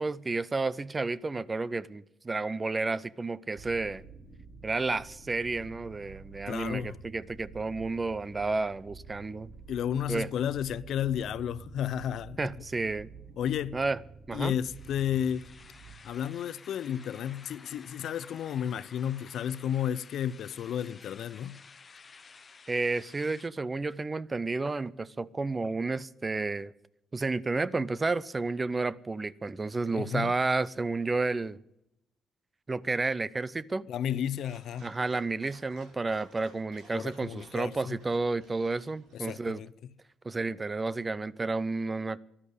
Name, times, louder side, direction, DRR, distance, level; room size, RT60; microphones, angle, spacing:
voice 1, 0.0-4.0 4.6-9.5 10.1-10.3 12.4-13.1 13.7-14.0 14.3-14.5 22.7-26.7 27.1-31.6 32.7-33.9 34.8-39.6 40.2-42.2, right 3 dB, 25° right, 0.6 m, -31 dB
sound 1, 3.5-16.0, right 5 dB, 50° right, 3.4 m, -49 dB
voice 2, 6.5-7.0 9.7-12.5 13.4-13.8 14.3-15.5 16.0-21.6 30.0-30.3 33.9-34.9 36.9-38.0 39.1-39.7, left 9 dB, 70° left, 0.6 m, -32 dB
sound 2, 14.5-23.5, left 5 dB, 35° left, 0.9 m, -53 dB
Dog, 34.3-39.3, right 2 dB, 85° right, 5.9 m, -57 dB
13.5 x 11.5 x 8.4 m
cardioid pair, 90°, 0 cm